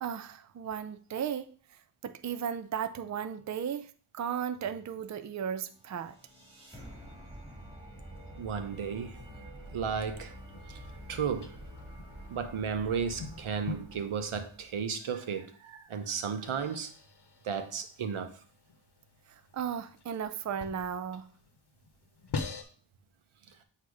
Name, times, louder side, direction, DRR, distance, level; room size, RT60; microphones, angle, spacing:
voice 1, 0.0-1.5 2.0-6.1 19.5-21.3, right 8 dB, 40° right, 0.4 m, -35 dB
sound 1, 5.7-14.9, equal, 10° right, 2.3 m, -48 dB
voice 2, 8.4-9.1 9.7-10.3 11.1-11.5 12.3-16.9 17.4-18.4, right 6 dB, 85° right, 0.9 m, -34 dB
sound 2, 10.4-22.6, left 4 dB, 55° left, 0.9 m, -46 dB
8.2 x 2.8 x 4.7 m
wide cardioid pair, 80°, 48 cm